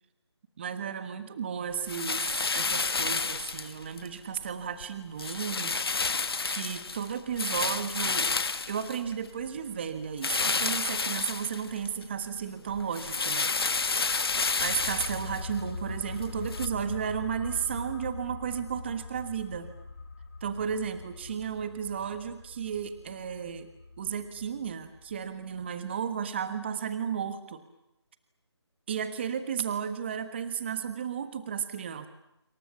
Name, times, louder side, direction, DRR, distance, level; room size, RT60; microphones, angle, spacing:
voice 1, 0.6-5.8 6.4-8.3 8.7-13.5 14.6-19.7 20.4-23.7 24.0-27.6 28.9-32.1, right 7 dB, 25° right, 10 dB, 1.4 m, -34 dB
sound 1, 1.9-4.1 4.5-4.8 5.2-9.5 10.2-12.0 12.4-16.7, left 4 dB, 55° left, 1.5 m, -30 dB
sound 2, 14.6-26.0 26.2-26.3, left 3 dB, 35° left, 5.3 m, -42 dB
27.0 x 27.0 x 7.2 m, 0.83 s
figure-of-eight pair, 165°, 15 cm